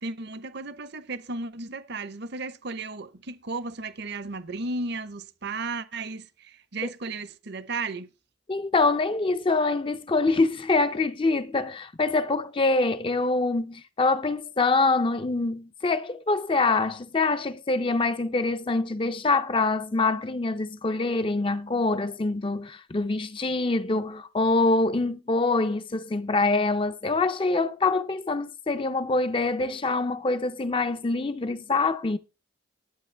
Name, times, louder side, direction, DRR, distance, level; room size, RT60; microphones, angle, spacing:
voice 1, 0.0-8.1, right 3 dB, 55° right, 0.8 m, -34 dB
voice 2, 8.5-32.2, left 3 dB, 25° left, 0.5 m, -25 dB
11.5 x 8.6 x 3.3 m
head